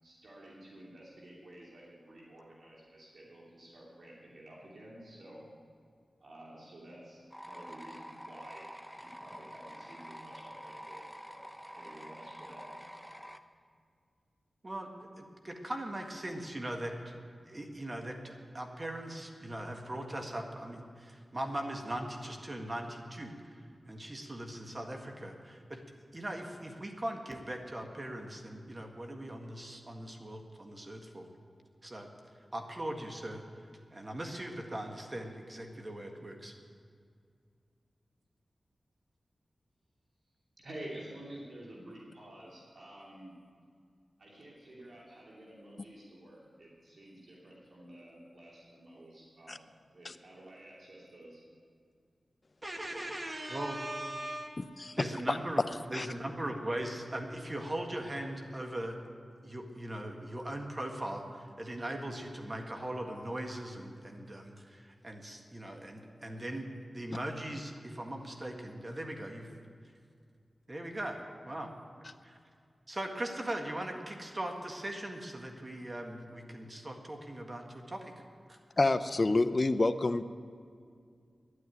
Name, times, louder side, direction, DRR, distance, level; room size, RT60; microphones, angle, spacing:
voice 1, 0.0-5.4 6.2-8.7 9.0-12.9 40.6-43.3 44.2-49.6 49.9-51.4, right 1 dB, 70° right, -5 dB, 2.9 m, -51 dB
sound 1, 7.3-13.4, equal, 5° right, 0.7 m, -48 dB
voice 2, 14.6-17.1 17.5-23.6 23.8-25.8 26.1-31.3 31.8-32.1 32.5-33.4 33.9-36.5 52.6-54.6 55.0-55.6 55.9-59.0 59.4-69.5 70.7-71.2 71.4-71.7 72.2-72.4 72.9-78.2 78.5-78.6, right 1 dB, 35° right, 3 dB, 1.7 m, -40 dB
voice 3, 54.6-55.4 55.9-56.1 78.8-80.2, left 2 dB, 45° left, 11 dB, 0.6 m, -28 dB
11.0 x 10.0 x 9.3 m, 2.3 s
cardioid pair, 55°, 0 cm